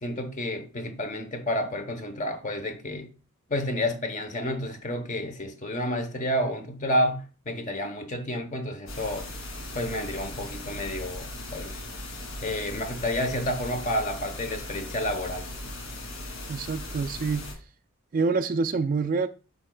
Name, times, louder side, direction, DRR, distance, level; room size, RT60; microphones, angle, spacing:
voice 1, 0.0-3.1 3.5-9.3 9.7-11.8 12.4-15.5, left 1 dB, 35° left, 0.9 m, -30 dB
sound 1, 8.9-17.5, left 1 dB, 70° left, 2.3 m, -38 dB
voice 2, 16.5-17.5 18.1-19.3, right 4 dB, 40° right, 0.3 m, -26 dB
11.0 x 4.0 x 2.2 m
head